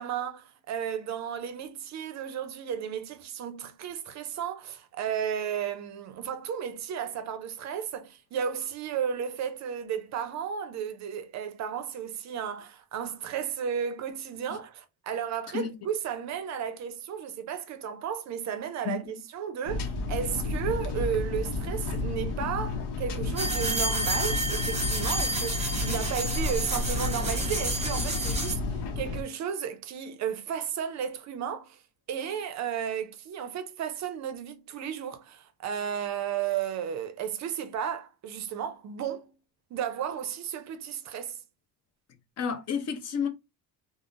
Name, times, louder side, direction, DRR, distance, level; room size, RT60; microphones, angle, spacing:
voice 1, 0.0-28.6 29.0-31.8 32.1-39.3 39.7-41.4, right 8 dB, 45° right, 0.5 m, -33 dB
sound 1, 19.7-29.2, left 3 dB, 90° left, 0.7 m, -32 dB
sound 2, 23.4-28.5, right 1 dB, 15° right, 0.8 m, -30 dB
voice 2, 42.4-43.3, left 7 dB, 40° left, 0.6 m, -30 dB
3.5 x 2.0 x 2.4 m
cardioid pair, 135°, 39 cm